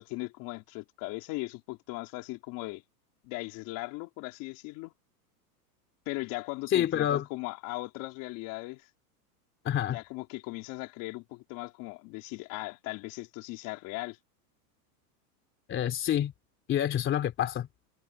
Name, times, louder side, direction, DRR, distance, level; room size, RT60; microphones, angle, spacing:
voice 1, 0.0-2.8 3.2-4.9 6.0-8.9 9.9-14.2, left 22 dB, 40° left, 3.1 m, -38 dB
voice 2, 6.7-7.2 9.6-10.0 15.7-16.3 16.7-17.7, left 10 dB, 25° left, 3.0 m, -27 dB
supercardioid pair, 145°, 48 cm